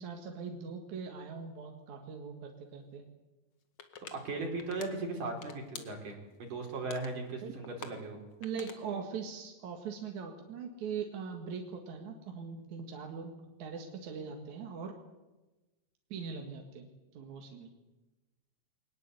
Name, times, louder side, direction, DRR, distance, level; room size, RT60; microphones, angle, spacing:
voice 1, 0.0-3.0 7.4-7.5 8.4-15.0 16.1-16.9 17.1-17.7, right 6 dB, 70° right, 3 dB, 3.1 m, -41 dB
sound 1, 3.8-4.1 4.6-4.9 5.3-6.3 6.7-7.1 7.6-8.8, left 6 dB, 45° left, 2.3 m, -46 dB
voice 2, 4.1-8.2, right 3 dB, 85° right, 2 dB, 5.9 m, -38 dB
22.5 x 19.5 x 8.2 m, 1.1 s
omnidirectional pair, 3.6 m